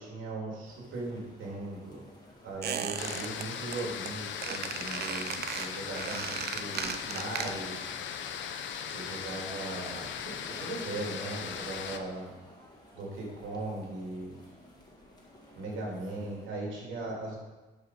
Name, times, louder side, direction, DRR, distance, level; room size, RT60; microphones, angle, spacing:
voice 1, 0.0-2.0 2.4-7.8 8.9-12.3 12.9-14.3 15.5-17.4, right 2 dB, 80° right, -2 dB, 2.9 m, -38 dB
sound 1, 0.6-16.5, left 1 dB, 20° left, 2.2 m, -54 dB
Squeak, 2.6-3.4 3.7-4.1 4.4-7.8 8.1-8.2, right 8 dB, 55° right, 0.6 m, -36 dB
sound 2, 3.0-12.0, left 8 dB, 70° left, 0.7 m, -38 dB
11.0 x 5.2 x 4.7 m, 1.2 s
cardioid pair, 90°, 20 cm